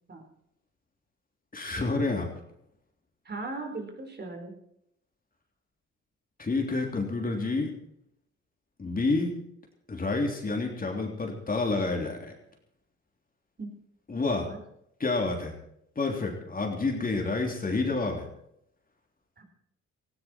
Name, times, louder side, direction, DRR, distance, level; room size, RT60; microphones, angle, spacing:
voice 1, 1.5-2.3 6.4-7.7 8.8-9.3 9.9-12.3 14.1-14.5 15.0-15.5 15.9-18.3, left 3 dB, 30° left, 2 dB, 3.2 m, -29 dB
voice 2, 3.2-4.5 13.6-13.7 14.5-14.6 19.4-19.5, right 3 dB, 35° right, 3 dB, 4.4 m, -38 dB
17.5 x 15.5 x 4.5 m, 0.76 s
cardioid pair, 90°, 30 cm